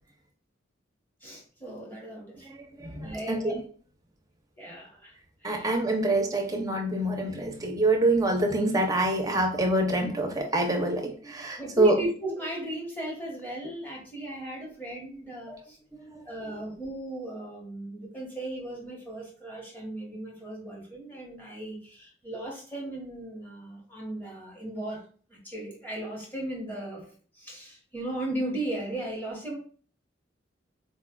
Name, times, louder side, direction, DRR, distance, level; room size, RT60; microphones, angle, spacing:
voice 1, 1.2-2.5 3.0-3.5 4.6-5.1 5.4-5.7 11.6-15.8 16.3-29.6, right 1 dB, 10° left, -3 dB, 1.0 m, -36 dB
voice 2, 2.4-3.6 5.4-11.9 13.6-13.7 15.5-15.6 16.0-16.6, right 2 dB, 20° right, 2 dB, 0.6 m, -26 dB
4.3 x 2.3 x 2.2 m, 0.42 s
head